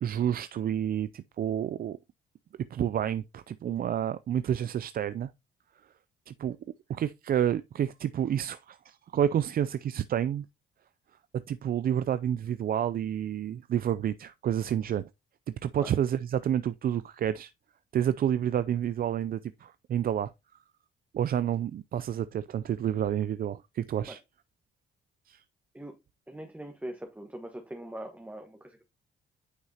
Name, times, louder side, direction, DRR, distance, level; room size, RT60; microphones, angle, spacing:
voice 1, 0.0-2.0 2.7-5.3 6.3-6.6 6.9-10.4 11.5-15.1 15.6-17.5 17.9-20.3 21.1-24.2 25.3-25.4, right 10 dB, 50° right, 0.4 m, -29 dB
voice 2, 26.3-28.8, right 1 dB, 10° right, 1.4 m, -41 dB
9.5 x 5.8 x 2.9 m
cardioid pair, 90°, 20 cm